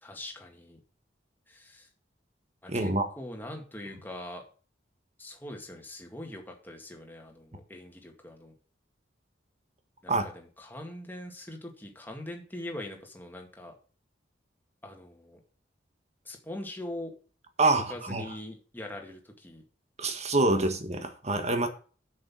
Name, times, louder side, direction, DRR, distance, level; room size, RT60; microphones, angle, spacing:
voice 1, 0.0-0.8 1.5-1.9 2.6-2.9 3.2-4.4 5.2-8.5 10.0-13.7 14.8-15.4 16.3-17.1 17.7-19.6, left 1 dB, 10° left, 2.0 m, -42 dB
voice 2, 2.7-3.1 10.1-10.3 17.6-18.3 20.0-21.7, right 2 dB, 35° right, 1.6 m, -26 dB
7.8 x 6.7 x 7.5 m
head